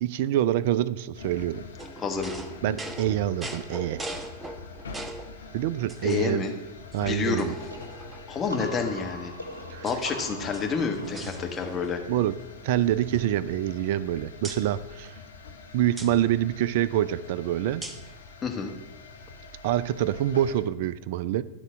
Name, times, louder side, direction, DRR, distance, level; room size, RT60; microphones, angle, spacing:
voice 1, 0.0-1.6 2.6-4.0 5.5-6.5 6.9-7.5 9.7-9.8 12.1-12.4 12.6-15.1 15.7-17.8 19.6-21.4, right 12 dB, 50° right, 17 dB, 0.3 m, -26 dB
sound 1, 1.1-20.6, left 4 dB, 70° left, 0.8 m, -45 dB
sound 2, 1.8-5.4 5.9-6.5 6.9-7.0 7.4-8.4 9.2-10.1 10.4-12.0 12.2-12.5 12.8-14.1 14.4-14.7 16.0-16.1 17.8-18.1, right 1 dB, 10° right, 0.8 m, -41 dB
voice 2, 2.0-2.3 6.0-6.5 7.0-7.5 8.3-9.3 9.8-12.0 18.4-18.7, left 5 dB, 25° left, 3 dB, 1.2 m, -29 dB
sound 3, 7.7-13.3, left 1 dB, 85° right, 1.1 m, -42 dB
11.5 x 3.9 x 6.1 m, 1.0 s
figure-of-eight pair, 90°, 0 cm